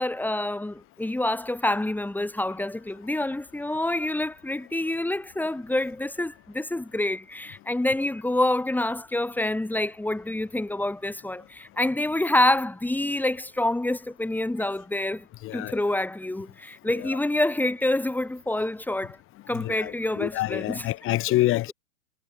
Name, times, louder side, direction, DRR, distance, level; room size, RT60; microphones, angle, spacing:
voice 1, 0.0-15.2 15.5-19.2 19.5-20.9, left 1 dB, 5° left, 7.6 m, -27 dB
voice 2, 15.4-15.8 17.0-17.1 19.6-21.7, left 16 dB, 30° left, 2.6 m, -27 dB
figure-of-eight pair, 110°, 45 cm